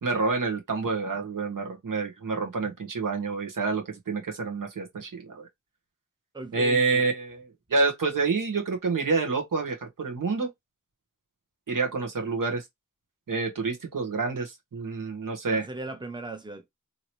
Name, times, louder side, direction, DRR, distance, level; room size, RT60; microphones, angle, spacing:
voice 1, 0.0-5.5 6.5-10.5 11.7-12.6 13.3-15.7, right 4 dB, 85° right, 1.0 m, -28 dB
voice 2, 6.3-7.1 15.5-16.7, right 2 dB, 15° right, 0.7 m, -38 dB
2.8 x 2.8 x 3.0 m
wide cardioid pair, 80°, 32 cm